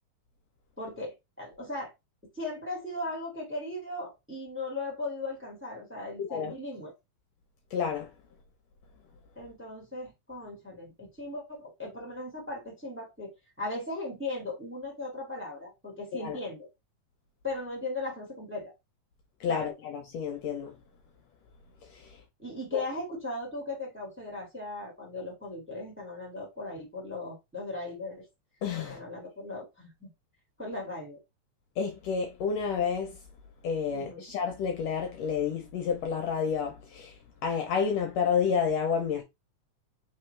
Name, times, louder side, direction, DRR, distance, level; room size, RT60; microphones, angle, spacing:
voice 1, 0.8-1.9 2.3-6.9 9.3-13.3 13.6-16.7 17.4-18.7 19.5-19.7 22.4-28.3 28.8-30.1 30.6-31.2 33.9-34.2, left 2 dB, 5° right, 1.3 m, -37 dB
voice 2, 7.7-8.1 16.2-16.4 19.4-20.7 22.7-22.8 28.6-29.0 31.8-33.1 33.6-37.1 37.4-39.2, left 6 dB, 70° left, 1.8 m, -29 dB
4.6 x 3.5 x 3.2 m
omnidirectional pair, 3.5 m